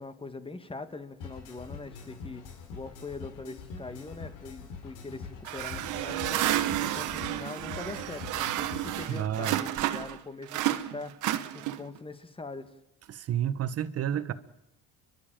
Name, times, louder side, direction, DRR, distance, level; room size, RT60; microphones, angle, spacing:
voice 1, 0.0-12.8, left 3 dB, 15° left, 1.9 m, -42 dB
sound 1, 1.2-9.2, left 5 dB, 75° left, 3.9 m, -44 dB
sound 2, 5.4-10.2 10.5-12.0, right 13 dB, 70° right, 1.3 m, -31 dB
voice 2, 9.1-9.6 13.1-14.3, right 10 dB, 50° right, 1.4 m, -30 dB
29.5 x 12.0 x 9.1 m
supercardioid pair, 95°, 32 cm